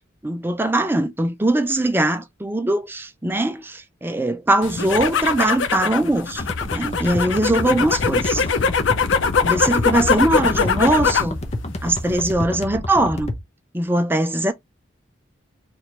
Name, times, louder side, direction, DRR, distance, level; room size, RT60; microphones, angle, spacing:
voice 1, 0.2-8.4 9.4-11.4 11.8-13.3 13.7-14.5, right 1 dB, 10° right, 0.5 m, -21 dB
sound 1, 4.6-11.4 11.7-12.3, left 5 dB, 70° left, 0.5 m, -22 dB
sound 2, 6.4-13.4, left 1 dB, 35° left, 0.8 m, -29 dB
3.0 x 2.5 x 4.3 m
head